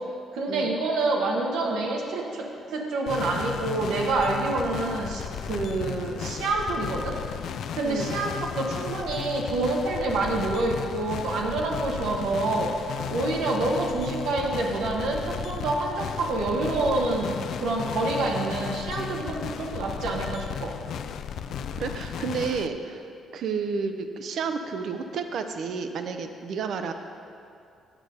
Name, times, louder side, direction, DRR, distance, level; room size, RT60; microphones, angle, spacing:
voice 1, 0.3-7.1 7.7-17.3 17.6-20.7, right 2 dB, 85° right, 0 dB, 1.2 m, -27 dB
sound 1, 3.1-22.7, left 8 dB, 70° left, 0.3 m, -35 dB
voice 2, 7.8-8.1 21.8-23.1 23.3-26.9, right 5 dB, 70° right, 7 dB, 0.6 m, -31 dB
8.3 x 6.6 x 5.4 m, 2.5 s
cardioid pair, 90°, 0 cm